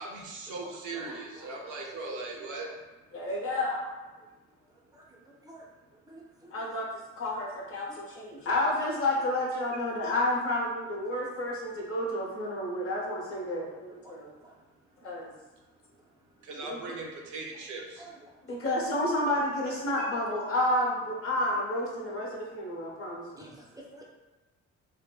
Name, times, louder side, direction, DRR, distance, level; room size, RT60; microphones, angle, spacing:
voice 1, 0.0-2.7 16.4-18.1 20.0-20.1, right 3 dB, 75° right, -1 dB, 0.6 m, -39 dB
voice 2, 0.9-1.6 2.6-2.7 4.9-5.0 5.4-5.7 6.1-6.5 7.9-8.0 8.4-8.5 14.0-14.2 14.4-14.5 18.0-18.1 23.4-24.0, right 1 dB, 15° right, -3 dB, 0.4 m, -50 dB
voice 3, 3.1-3.8 6.5-6.9 7.2-14.3 15.0-15.3 18.5-23.4, left 1 dB, 45° left, -3 dB, 0.8 m, -30 dB
2.6 x 2.0 x 2.3 m, 1.2 s
cardioid pair, 90°, 30 cm